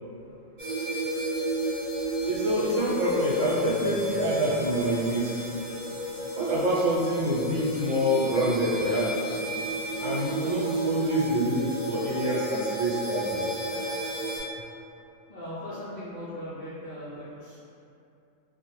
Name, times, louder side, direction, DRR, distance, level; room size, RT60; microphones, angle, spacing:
sound 1, 0.6-14.4, right 1 dB, 50° right, 0.6 m, -32 dB
voice 1, 2.3-5.4 6.4-9.3 10.0-13.4, equal, 75° right, -6 dB, 0.9 m, -26 dB
voice 2, 15.3-17.6, left 1 dB, 70° left, -10 dB, 0.4 m, -39 dB
2.1 x 2.1 x 3.0 m, 2.6 s
omnidirectional pair, 1.3 m